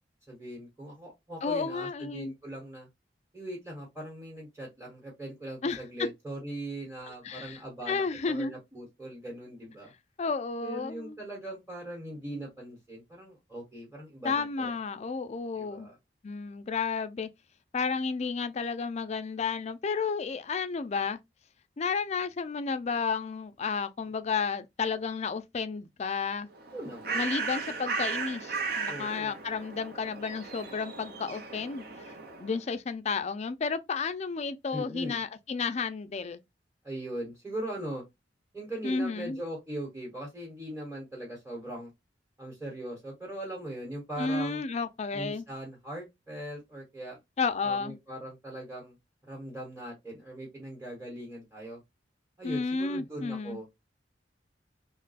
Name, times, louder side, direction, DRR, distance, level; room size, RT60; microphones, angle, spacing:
voice 1, 0.3-2.9 3.3-9.9 10.6-14.7 15.6-16.0 26.7-27.3 28.9-29.3 34.7-35.2 36.8-38.0 38.5-41.9 42.4-44.6 45.1-47.2 47.6-48.9 49.3-51.8 52.4-53.6, right 1 dB, 10° right, 1.1 m, -40 dB
voice 2, 1.4-2.3 5.6-5.8 7.2-7.6 7.9-8.6 10.2-11.2 14.2-15.9 16.2-17.3 17.7-21.2 21.8-26.5 27.1-31.9 32.4-36.4 38.8-39.4 44.2-45.4 47.4-48.0 52.4-53.6, left 5 dB, 40° left, 0.4 m, -32 dB
Bird, 26.5-32.6, right 4 dB, 55° right, 0.7 m, -36 dB
3.1 x 2.2 x 4.0 m
head